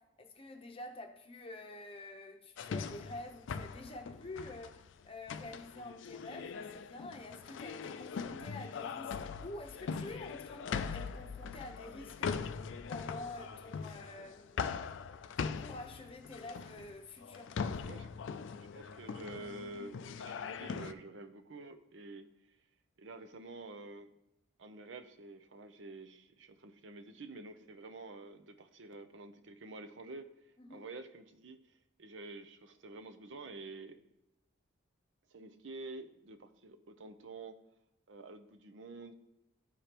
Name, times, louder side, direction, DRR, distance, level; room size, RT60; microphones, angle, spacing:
voice 1, 0.0-12.5 12.9-17.9 30.6-30.8, left 2 dB, 30° left, 0.8 m, -48 dB
sound 1, 2.6-20.9, left 6 dB, 65° left, 0.3 m, -41 dB
voice 2, 18.7-22.3 23.0-24.1 24.6-30.3 30.7-31.6 32.0-34.0 35.3-37.6 38.1-39.1, right 2 dB, 65° right, 0.6 m, -48 dB
12.5 x 4.9 x 3.0 m
head